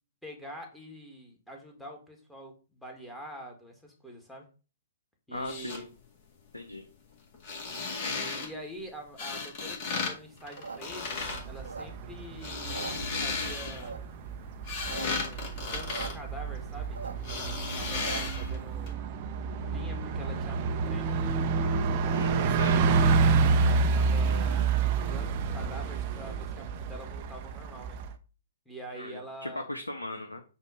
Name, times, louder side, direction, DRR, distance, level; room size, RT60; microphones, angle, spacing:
voice 1, 0.2-4.5 5.3-5.9 7.7-11.2 11.4-14.1 14.9-19.0 19.7-21.3 23.6-28.0 28.6-29.6, equal, ahead, 0 dB, 1.7 m, -45 dB
voice 2, 5.3-5.9 6.5-6.8 22.1-22.8 28.9-30.4, left 2 dB, 75° left, 5 dB, 0.9 m, -38 dB
sound 1, 5.3-5.8 7.3-8.5 9.2-10.1 10.4-11.4 12.2-13.9 14.4-16.8 17.2-18.6 18.9-19.0, left 4 dB, 35° left, 2.0 m, -35 dB
sound 2, 10.4-12.3 12.6-13.5 13.8-14.3 14.7-15.1 15.3-15.4 15.6-16.1 16.4-18.4, right 4 dB, 70° right, 1.0 m, -41 dB
Bus, 11.0-28.1, right 4 dB, 35° right, 0.8 m, -29 dB
8.0 x 2.8 x 5.6 m, 0.35 s
figure-of-eight pair, 120°, 0 cm